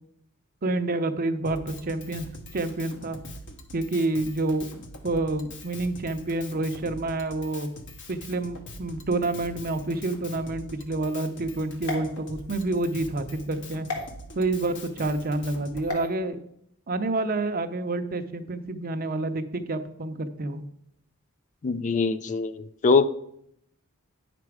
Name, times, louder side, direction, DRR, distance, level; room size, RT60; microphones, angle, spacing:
voice 1, 0.6-3.2 3.7-4.7 5.0-7.7 8.1-13.9 14.3-16.4 16.9-20.6, right 2 dB, 40° right, 9 dB, 0.7 m, -28 dB
Drum kit, 1.4-15.9, left 1 dB, 55° left, 1.1 m, -44 dB
sound 1, 11.8-12.8 13.9-14.0 15.8-16.1, left 3 dB, 80° left, 1.9 m, -35 dB
voice 2, 21.6-23.1, left 4 dB, 35° left, 12 dB, 0.4 m, -23 dB
9.3 x 6.0 x 4.7 m, 0.74 s
head